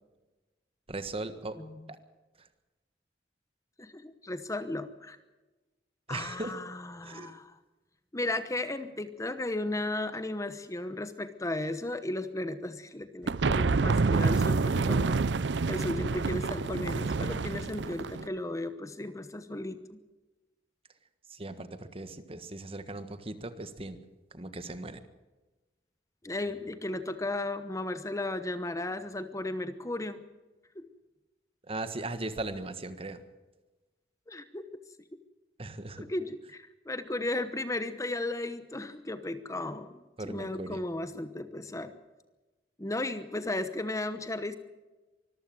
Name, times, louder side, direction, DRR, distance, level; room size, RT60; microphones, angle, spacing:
voice 1, 0.9-1.6 1.9-2.0 6.1-6.5 7.0-7.3 21.3-24.0 24.3-25.0 31.7-33.2 35.6-36.1 40.2-40.8, right 2 dB, 35° right, 11 dB, 1.5 m, -38 dB
voice 2, 3.8-5.2 6.1-7.6 8.1-15.2 15.7-20.0 26.2-30.2 30.7-30.9 34.3-34.6 36.1-41.9 42.8-44.5, left 2 dB, 20° left, 11 dB, 1.0 m, -35 dB
sound 1, 13.3-18.3, right 4 dB, 85° right, 0.6 m, -28 dB
24.5 x 14.5 x 7.7 m, 1.2 s
head